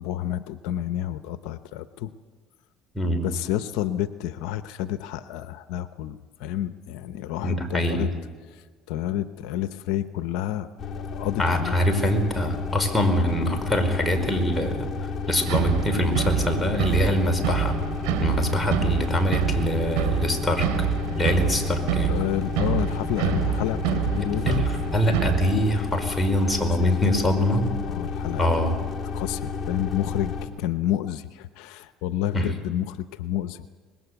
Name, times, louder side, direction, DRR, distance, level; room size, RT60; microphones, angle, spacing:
voice 1, 0.0-2.1 3.2-8.1 8.5-11.8 21.4-21.5 22.1-24.7 26.8-27.1 27.9-28.5 29.1-33.6, left 12 dB, 80° left, 11 dB, 0.8 m, -30 dB
voice 2, 2.9-3.3 7.4-8.1 11.4-14.9 15.3-17.8 18.2-20.7 21.2-22.2 24.4-27.7 28.4-28.8 32.3-32.5, equal, 10° left, 4 dB, 5.0 m, -24 dB
sound 1, 10.8-30.5, left 5 dB, 30° left, 3.6 m, -32 dB
sound 2, 15.5-25.5, right 9 dB, 85° right, 3.2 m, -27 dB
25.0 x 21.0 x 8.2 m, 1.5 s
supercardioid pair, 95°, 0 cm